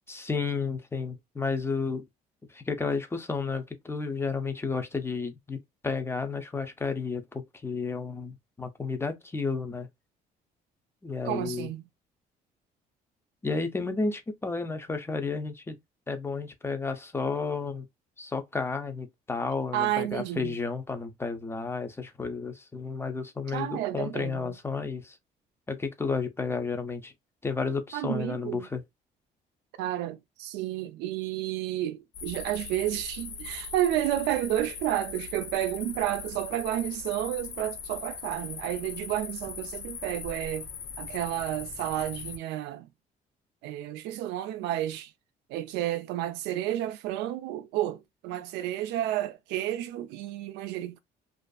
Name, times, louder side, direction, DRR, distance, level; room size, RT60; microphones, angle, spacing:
voice 1, 0.1-2.1 2.5-9.9 11.0-11.7 13.4-15.8 16.1-17.9 18.2-25.2 25.7-27.1 27.4-28.8, left 4 dB, 15° left, 0.5 m, -32 dB
voice 2, 11.2-11.8 19.7-20.6 23.5-24.6 27.9-28.7 29.8-40.7 41.0-42.9 43.6-45.1 45.5-51.0, right 13 dB, 90° right, 0.4 m, -31 dB
sound 1, 32.1-42.4, left 5 dB, 70° left, 0.8 m, -40 dB
2.5 x 2.4 x 2.3 m
cardioid pair, 110°, 17 cm